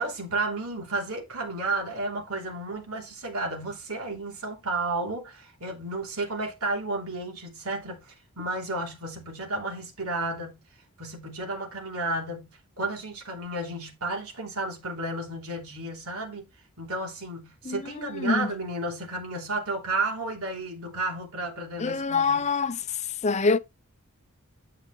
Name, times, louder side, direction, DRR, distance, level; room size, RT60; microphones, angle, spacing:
voice 1, 0.0-10.6 11.0-12.5 12.8-16.5 16.8-22.5, right 2 dB, 90° right, 3.2 m, -32 dB
voice 2, 17.7-18.5 21.8-22.8 23.2-23.6, left 4 dB, 30° left, 0.5 m, -25 dB
11.0 x 5.7 x 3.1 m
head